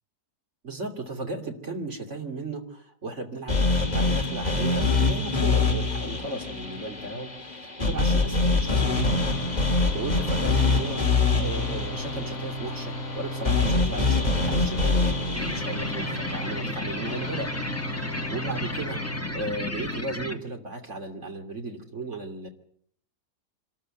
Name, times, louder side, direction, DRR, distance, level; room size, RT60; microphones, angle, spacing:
voice 1, 0.6-9.4 9.9-17.5 18.1-19.0 19.3-22.5, right 2 dB, 45° right, 3 dB, 3.1 m, -36 dB
sound 1, 3.5-17.6, left 3 dB, 25° left, 3.0 m, -25 dB
sound 2, 8.6-20.0, left 1 dB, 50° left, 1.9 m, -36 dB
sound 3, 15.3-20.3, left 2 dB, 10° left, 1.7 m, -33 dB
26.0 x 13.5 x 9.0 m, 0.66 s
omnidirectional pair, 1.7 m